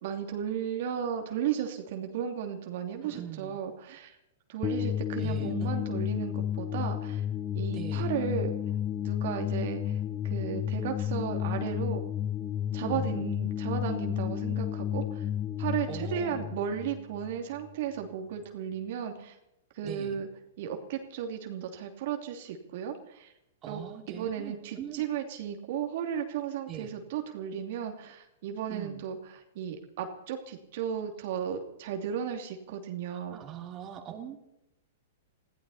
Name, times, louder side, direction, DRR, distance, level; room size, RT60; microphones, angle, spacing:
voice 1, 0.0-4.2 4.5-7.2 7.5-8.5 9.0-12.0 12.7-15.3 15.6-19.4 19.7-20.3 20.6-23.3 23.7-23.8 24.1-33.4, right 8 dB, 60° right, 4 dB, 2.8 m, -35 dB
voice 2, 3.0-3.6 5.2-5.8 7.7-8.1 12.8-13.3 15.9-16.5 19.8-20.2 23.6-25.0 26.7-26.9 28.7-29.0 33.1-34.4, right 9 dB, 30° right, 2 dB, 2.9 m, -42 dB
sound 1, 4.6-17.7, left 10 dB, 25° left, 0.7 m, -32 dB
22.0 x 15.5 x 4.3 m, 0.85 s
hypercardioid pair, 135°, 0 cm